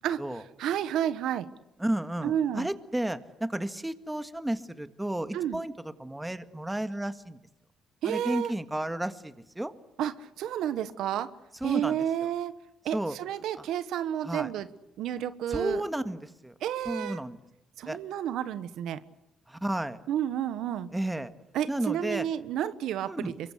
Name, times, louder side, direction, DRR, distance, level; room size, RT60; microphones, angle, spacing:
voice 1, 0.0-1.5 2.2-2.7 5.3-5.6 8.0-8.5 10.0-11.3 11.6-12.5 12.8-14.7 15.0-15.8 16.6-17.2 17.8-19.0 20.1-20.9 21.5-23.5, right 10 dB, 85° right, 13 dB, 1.2 m, -31 dB
voice 2, 1.8-5.7 6.0-7.4 8.0-9.7 11.6-12.0 12.9-13.2 13.6-13.7 14.2-14.5 15.5-16.5 16.9-17.4 17.9-18.0 19.5-20.0 20.9-21.3 21.7-22.3 23.1-23.3, right 1 dB, 10° right, 10 dB, 1.8 m, -32 dB
27.5 x 23.5 x 8.2 m, 0.92 s
cardioid pair, 90°, 0 cm